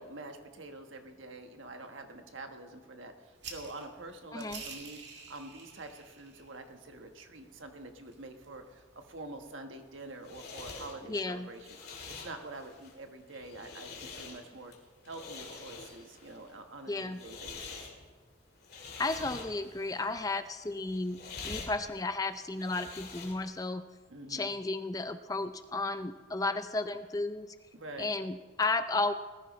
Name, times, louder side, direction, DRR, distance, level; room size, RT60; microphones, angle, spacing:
voice 1, 0.0-5.0 5.3-11.7 12.1-14.7 15.0-17.9 24.1-24.5 27.7-28.1, right 2 dB, 75° right, 5 dB, 1.3 m, -46 dB
sound 1, 3.4-9.5, right 5 dB, 60° right, 2.0 m, -50 dB
voice 2, 4.3-4.6 11.1-11.5 16.9-17.2 19.0-21.2 21.4-23.8 24.3-27.5 28.0-29.1, left 3 dB, 15° left, 10 dB, 0.4 m, -33 dB
sound 2, 9.8-23.7, left 4 dB, 50° left, 2.1 m, -46 dB
19.5 x 14.0 x 3.2 m, 1.4 s
head